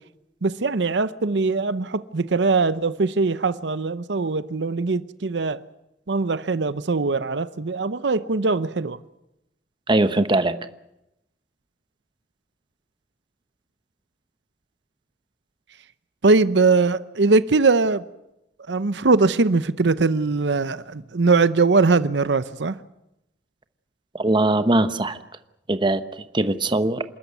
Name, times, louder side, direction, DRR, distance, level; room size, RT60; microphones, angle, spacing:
voice 1, 0.4-5.6 6.1-9.0 16.2-18.0 18.7-22.7, right 3 dB, 85° right, 0.8 m, -21 dB
voice 2, 9.9-10.5 24.1-25.2 25.7-27.0, right 2 dB, 25° right, 1.0 m, -21 dB
27.5 x 13.5 x 9.4 m
head